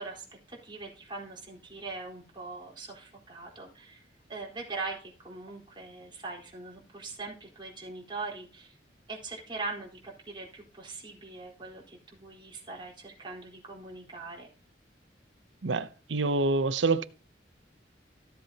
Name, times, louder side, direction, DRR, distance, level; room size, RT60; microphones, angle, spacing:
voice 1, 0.0-4.0 4.3-8.7 9.1-14.5, right 3 dB, 25° right, 4.1 m, -41 dB
voice 2, 15.6-17.0, right 3 dB, 90° right, 0.7 m, -27 dB
14.5 x 7.8 x 2.9 m
head